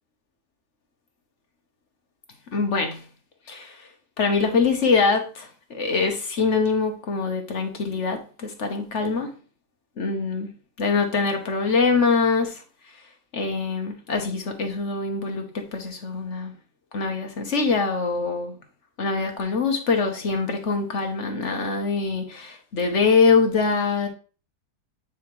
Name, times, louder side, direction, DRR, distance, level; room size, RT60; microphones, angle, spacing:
voice 1, 2.5-3.0 3.5-3.8 4.2-9.3 10.0-10.5 10.8-12.6 13.3-16.5 16.9-18.5 19.0-24.1, left 4 dB, 50° left, 1.3 m, -23 dB
9.0 x 4.9 x 3.1 m
omnidirectional pair, 1.8 m